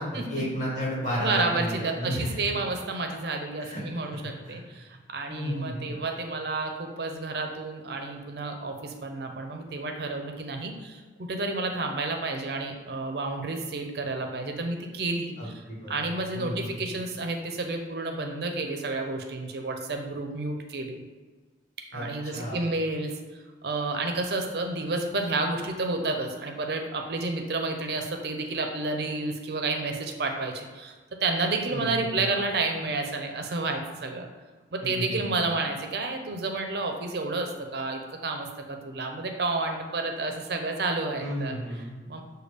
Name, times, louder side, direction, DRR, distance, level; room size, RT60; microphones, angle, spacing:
voice 1, 0.0-2.6 3.6-3.8 4.1-4.6 5.3-6.0 15.4-16.7 21.9-22.7 31.7-32.3 34.8-35.2 41.2-42.0, equal, 45° left, -5 dB, 1.4 m, -33 dB
voice 2, 1.2-15.5 15.9-21.0 21.9-23.1 23.6-30.9 31.2-34.3 34.7-41.5 42.1-42.2, right 3 dB, 60° right, 4 dB, 0.5 m, -30 dB
6.4 x 2.2 x 3.4 m, 1.4 s
head